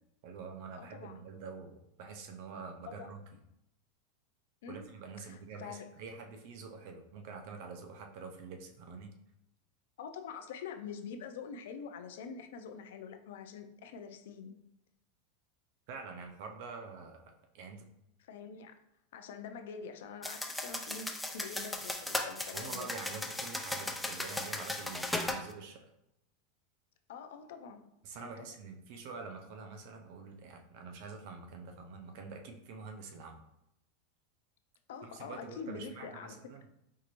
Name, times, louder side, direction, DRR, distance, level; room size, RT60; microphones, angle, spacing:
voice 1, 0.2-3.2 4.7-9.1 15.9-17.9 22.5-25.9 28.0-33.4 35.0-36.6, right 4 dB, 50° right, 4 dB, 0.5 m, -46 dB
voice 2, 0.7-1.1 2.8-3.1 4.6-4.9 5.3-5.9 10.0-14.6 18.2-18.7 19.1-22.9 27.1-27.8 28.2-28.6 34.9-36.4, left 6 dB, 75° left, 7 dB, 0.4 m, -45 dB
sound 1, 20.2-25.4, left 1 dB, 5° left, 0.3 m, -37 dB
4.6 x 2.5 x 2.9 m, 0.83 s
supercardioid pair, 175°, 0 cm